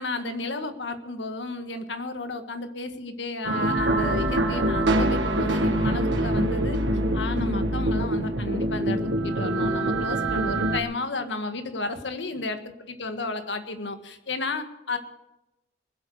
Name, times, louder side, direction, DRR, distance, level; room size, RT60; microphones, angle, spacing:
voice 1, 0.0-6.8 7.1-15.0, left 3 dB, 85° left, 8 dB, 1.6 m, -32 dB
sound 1, 3.4-10.8, right 1 dB, 90° right, 1.7 m, -24 dB
21.0 x 8.2 x 6.5 m, 0.90 s
head